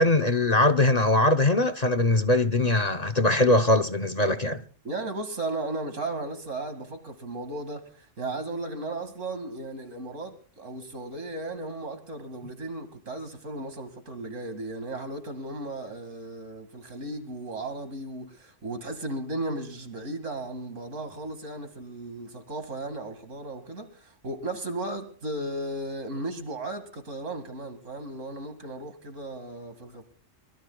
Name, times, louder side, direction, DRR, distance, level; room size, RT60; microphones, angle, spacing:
voice 1, 0.0-4.6, left 2 dB, 35° left, 0.9 m, -21 dB
voice 2, 4.8-30.0, right 2 dB, 75° right, 2.6 m, -35 dB
24.5 x 22.0 x 2.3 m
omnidirectional pair, 1.3 m